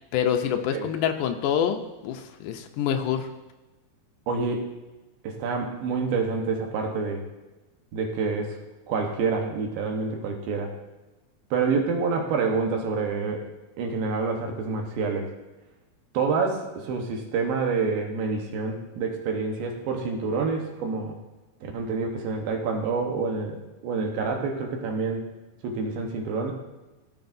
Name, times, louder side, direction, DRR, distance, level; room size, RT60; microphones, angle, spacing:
voice 1, 0.1-3.3, left 9 dB, 80° left, 5 dB, 1.9 m, -26 dB
voice 2, 4.3-4.7 5.2-7.2 7.9-8.6 8.9-10.7 11.5-13.5 13.8-15.3 16.1-21.2 21.6-25.3 25.6-26.5, right 4 dB, 80° right, 2 dB, 2.9 m, -27 dB
16.0 x 6.5 x 2.6 m, 1.1 s
omnidirectional pair, 4.2 m